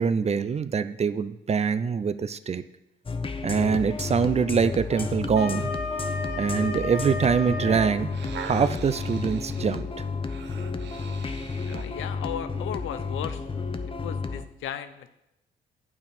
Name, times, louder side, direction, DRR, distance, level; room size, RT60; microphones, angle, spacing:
voice 1, 0.0-2.6 3.4-5.6 6.4-8.1 8.4-9.9, right 6 dB, 35° right, 13 dB, 0.5 m, -24 dB
sound 1, 3.1-14.4, left 4 dB, 25° left, 0.8 m, -32 dB
Wind instrument woodwind instrument, 4.9-8.0, left 2 dB, 65° left, 2.3 m, -33 dB
sound 2, 8.1-12.0 12.6-12.7, right 7 dB, 65° right, 0.9 m, -41 dB
voice 2, 11.7-13.4 14.0-15.1, left 10 dB, 80° left, 11 dB, 0.7 m, -36 dB
8.8 x 8.6 x 4.3 m, 0.85 s
cardioid pair, 90°, 20 cm